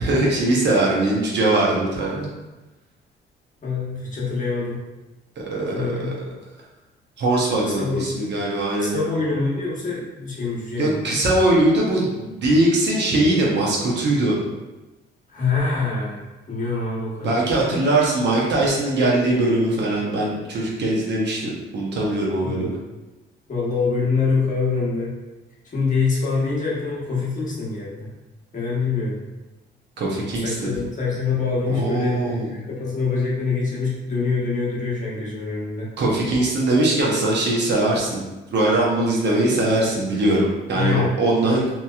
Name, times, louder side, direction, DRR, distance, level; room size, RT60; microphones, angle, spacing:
voice 1, 0.0-2.3 5.4-6.0 7.2-8.9 10.8-14.4 17.2-22.8 30.0-30.7 31.7-32.5 36.0-38.2 38.5-41.6, right 2 dB, 60° right, -3 dB, 0.9 m, -21 dB
voice 2, 3.6-4.8 5.7-6.2 7.6-8.1 8.8-11.1 15.3-17.5 22.4-22.7 23.5-25.1 25.6-28.1 28.5-29.2 30.3-35.9 40.7-41.6, left 4 dB, 40° left, -6 dB, 1.1 m, -25 dB
2.9 x 2.7 x 2.3 m, 1.1 s
cardioid pair, 90°, 20 cm